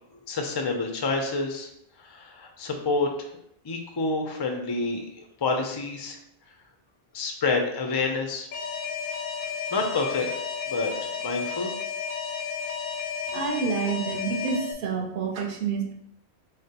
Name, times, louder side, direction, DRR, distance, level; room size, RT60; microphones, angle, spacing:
voice 1, 0.3-1.7 2.0-3.3 3.6-5.0 5.4-6.2 7.1-8.5 9.7-10.3 10.7-10.9 11.2-11.7, left 3 dB, 35° left, 3 dB, 0.4 m, -28 dB
Alarm, 8.5-14.7, left 6 dB, 65° left, 0.7 m, -32 dB
voice 2, 13.3-15.9, right 5 dB, 60° right, 2 dB, 0.8 m, -28 dB
6.3 x 2.1 x 2.8 m, 0.74 s
omnidirectional pair, 1.1 m